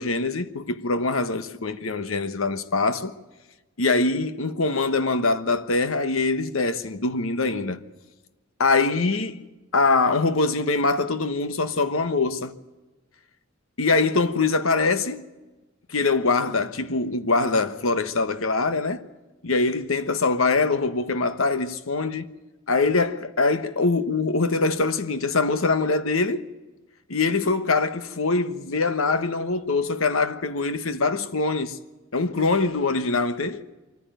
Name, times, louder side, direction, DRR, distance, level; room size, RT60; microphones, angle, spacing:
voice 1, 0.0-3.1 3.8-7.9 8.6-9.4 9.7-12.6 13.8-15.3 15.9-19.1 19.4-22.3 22.7-26.4 27.1-31.8 32.1-33.6, left 3 dB, 90° left, 1.3 m, -23 dB
24.0 x 14.5 x 9.2 m
head